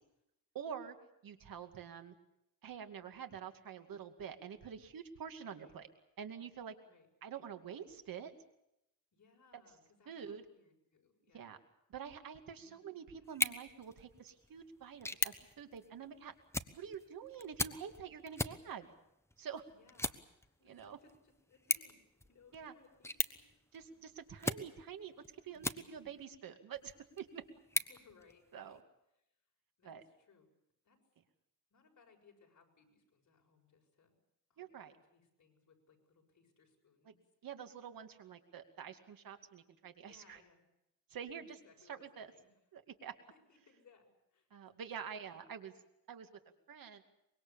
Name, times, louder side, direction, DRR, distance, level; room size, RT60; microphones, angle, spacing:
voice 1, 0.5-1.0 1.2-2.1 2.6-5.9 6.2-6.7 7.2-8.3 10.1-10.4 11.3-11.6 11.9-16.3 16.7-18.9 19.4-19.6 20.7-21.0 22.5-22.7 23.7-27.4 28.5-28.8 29.8-30.0 34.6-34.9 37.1-37.2 37.4-40.4 41.1-41.6 41.9-42.3 42.7-43.1 44.5-45.7 46.1-46.3 46.7-47.0, right 7 dB, 85° right, 7 dB, 2.4 m, -47 dB
voice 2, 5.4-5.8 6.8-7.1 9.1-11.5 12.6-13.1 19.7-23.5 23.9-24.0 24.3-24.5 25.5-26.1 27.9-28.8 29.8-30.5 30.8-31.0 31.7-34.2 34.5-37.2 40.0-40.7 41.3-42.5 43.3-44.5 45.1-45.6, left 5 dB, 60° left, 3 dB, 6.6 m, -67 dB
sound 1, 13.2-26.2 26.7-28.8, left 1 dB, 10° left, 1.1 m, -42 dB
24.5 x 22.5 x 7.2 m, 0.83 s
cardioid pair, 105°, 33 cm